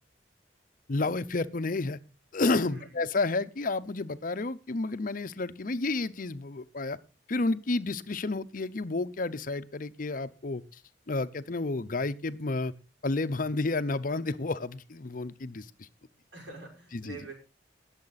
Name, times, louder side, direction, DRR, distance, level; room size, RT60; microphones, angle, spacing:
voice 1, 0.9-2.0 2.3-7.0 7.3-10.8 11.1-12.7 13.0-15.9 16.9-17.2, left 3 dB, 50° left, 13 dB, 0.7 m, -31 dB
voice 2, 16.3-17.3, right 3 dB, 90° right, 0 dB, 5.8 m, -45 dB
19.5 x 7.3 x 4.1 m, 0.32 s
head